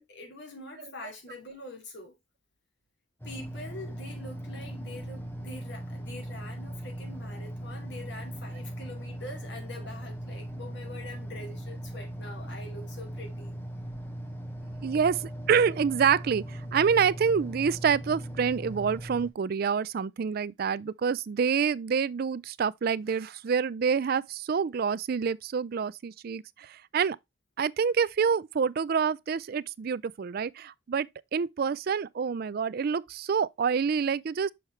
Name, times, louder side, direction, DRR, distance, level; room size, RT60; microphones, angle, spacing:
voice 1, 0.0-2.1 3.2-13.6, left 2 dB, 65° left, 2.7 m, -44 dB
sound 1, 3.2-19.3, right 1 dB, 10° left, 1.1 m, -39 dB
voice 2, 14.8-27.2 27.6-31.1 31.3-34.5, right 6 dB, 50° right, 0.4 m, -27 dB
6.4 x 5.7 x 3.1 m
head